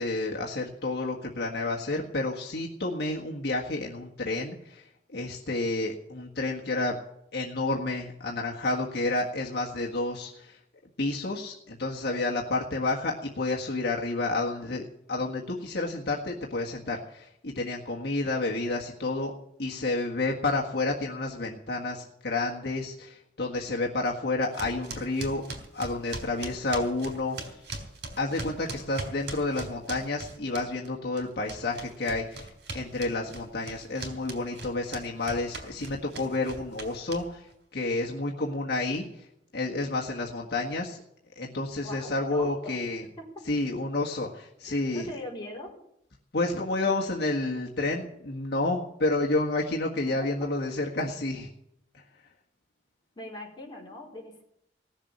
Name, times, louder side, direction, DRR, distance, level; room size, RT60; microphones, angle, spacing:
voice 1, 0.0-4.8 5.1-7.0 7.3-10.6 11.0-19.3 19.6-25.4 25.7-27.6 28.2-37.5 37.7-39.3 39.5-41.0 41.4-43.1 43.5-45.1 46.3-51.5, left 2 dB, 65° left, -1 dB, 1.7 m, -30 dB
sound 1, 24.5-30.9 31.2-37.5, right 2 dB, 75° right, 3.6 m, -40 dB
voice 2, 41.8-42.8 43.2-43.4 44.7-45.7 50.2-50.3 53.2-54.4, left 1 dB, 25° left, -2 dB, 4.3 m, -41 dB
18.0 x 7.3 x 8.7 m, 0.77 s
head